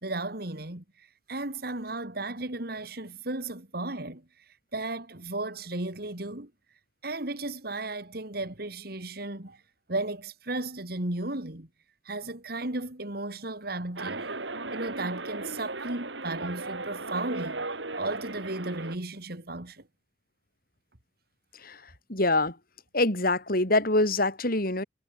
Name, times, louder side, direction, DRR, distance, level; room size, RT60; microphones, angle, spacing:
voice 1, 0.0-4.4 4.7-6.5 7.0-9.6 9.9-11.7 12.0-14.3 14.7-17.6 17.9-19.8, right 2 dB, 55° right, 3.0 m, -35 dB
sound 1, 14.0-19.0, right 3 dB, 85° right, 5.9 m, -36 dB
voice 2, 22.1-22.6 22.9-24.8, left 2 dB, 50° left, 6.1 m, -25 dB
head